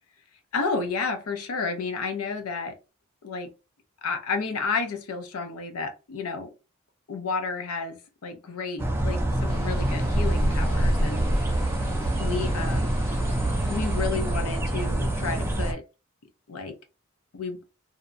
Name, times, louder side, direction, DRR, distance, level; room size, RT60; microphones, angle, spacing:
voice 1, 0.5-2.8 3.2-3.5 4.0-6.5 7.1-11.3 12.2-13.3 13.6-15.8 16.5-16.8 17.3-17.6, left 4 dB, 80° left, 0.6 m, -31 dB
sound 1, 8.8-15.7, right 1 dB, 10° right, 0.4 m, -25 dB
sound 2, 9.5-14.5, right 1 dB, 20° left, 1.3 m, -43 dB
2.7 x 2.1 x 2.5 m
head